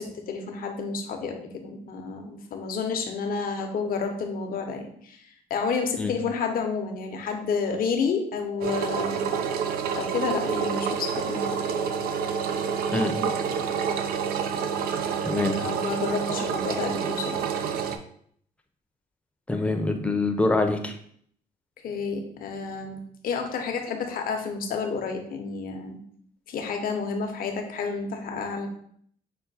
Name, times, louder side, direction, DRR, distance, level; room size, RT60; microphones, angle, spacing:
voice 1, 0.0-9.2 10.0-11.6 15.5-17.4 21.8-26.0 26.5-28.7, left 5 dB, 65° left, 4 dB, 0.8 m, -30 dB
Engine, 8.6-18.0, right 7 dB, 80° right, 0.4 m, -28 dB
voice 2, 15.2-15.6 19.5-21.0, left 2 dB, 10° left, 5 dB, 0.6 m, -25 dB
5.5 x 2.2 x 4.1 m, 0.63 s
cardioid pair, 80°, 16 cm